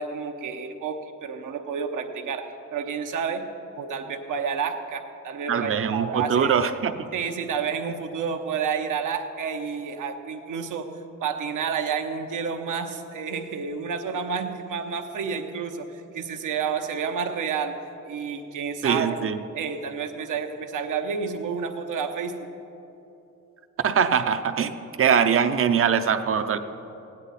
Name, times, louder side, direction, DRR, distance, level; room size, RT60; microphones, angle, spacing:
voice 1, 0.0-3.5 3.8-6.7 7.1-10.9 11.2-19.2 19.5-22.5, right 6 dB, 85° right, 5 dB, 0.9 m, -30 dB
voice 2, 5.5-6.9 18.8-19.4 23.8-24.7 25.0-26.6, right 7 dB, 45° right, 10 dB, 0.6 m, -22 dB
16.5 x 9.8 x 4.1 m, 2.9 s
cardioid pair, 135°, 31 cm